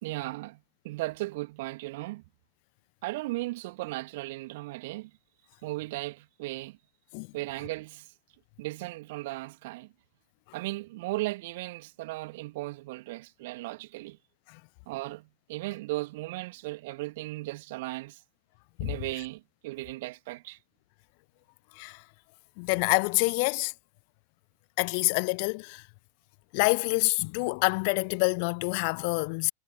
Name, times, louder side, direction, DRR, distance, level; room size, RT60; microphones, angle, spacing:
voice 1, 0.0-0.6 0.8-2.2 3.0-5.1 5.6-6.8 7.3-8.1 8.6-9.9 10.5-14.2 14.9-18.2 18.8-20.6, right 20 dB, 50° right, 2.5 m, -36 dB
voice 2, 22.6-23.7 24.8-25.9 26.5-29.5, left 35 dB, 45° left, 0.5 m, -27 dB
figure-of-eight pair, 90°, 0 cm